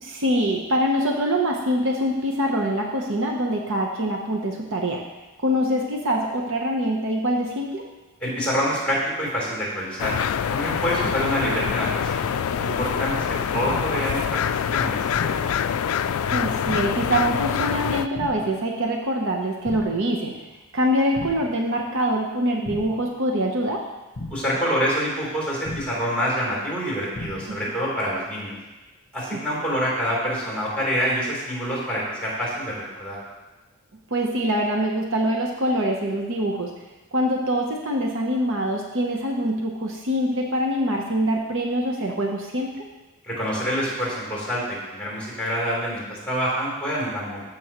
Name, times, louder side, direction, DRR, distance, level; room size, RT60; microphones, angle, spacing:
voice 1, 0.0-5.0 5.4-7.8 16.3-20.3 20.7-23.8 27.5-27.6 29.3-29.4 34.1-36.7 37.1-42.9, equal, 60° right, 1 dB, 0.9 m, -24 dB
voice 2, 8.2-10.1 10.5-12.3 12.6-13.2 13.5-14.4 14.7-15.4 24.3-28.6 29.1-33.2 43.2-47.4, equal, 5° left, -6 dB, 3.4 m, -26 dB
sound 1, 10.0-18.1, left 8 dB, 65° left, 0.3 m, -25 dB
sound 2, 13.6-14.1 15.1-15.6 16.6-17.1 18.1-18.6 19.6-20.1 21.1-21.6 22.6-23.1 24.1-24.6 25.6-26.1 27.1-27.6, left 2 dB, 45° left, 0.9 m, -36 dB
14.0 x 6.3 x 3.0 m, 1.1 s
head